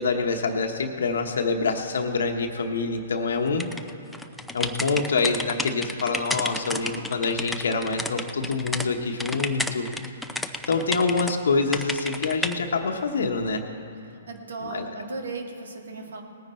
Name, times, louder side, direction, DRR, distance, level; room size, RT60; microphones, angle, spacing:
voice 1, 0.0-3.7 4.5-9.9 10.7-13.6 14.6-14.8, left 4 dB, 80° left, 3 dB, 1.1 m, -26 dB
sound 1, 3.6-8.9 9.2-11.3 11.7-12.5, left 1 dB, 5° left, 0.5 m, -31 dB
voice 2, 14.1-16.2, right 3 dB, 80° right, 3 dB, 1.8 m, -36 dB
19.0 x 9.5 x 4.4 m, 2.7 s
hypercardioid pair, 135°, 0 cm